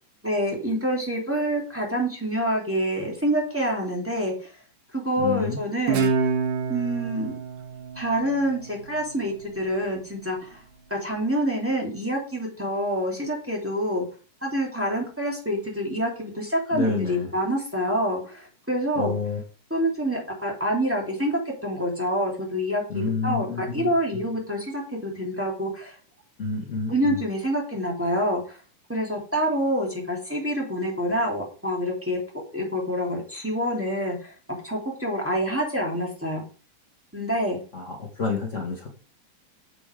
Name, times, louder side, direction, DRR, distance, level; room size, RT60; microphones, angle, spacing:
voice 1, 0.2-4.3 4.9-6.1 6.7-7.3 7.9-10.6 10.9-14.0 14.4-19.1 19.7-25.9 26.9-28.6 28.9-32.2 32.5-34.3 34.6-36.4 37.1-37.6, equal, 5° right, -2 dB, 2.1 m, -27 dB
voice 2, 5.2-5.6 16.7-17.3 19.0-19.4 22.9-24.2 26.4-27.2 37.7-38.9, left 5 dB, 75° left, 1 dB, 0.7 m, -29 dB
Guitar, 5.9-9.1, right 5 dB, 85° right, 2.7 m, -27 dB
6.9 x 6.9 x 4.9 m, 0.39 s
omnidirectional pair, 3.7 m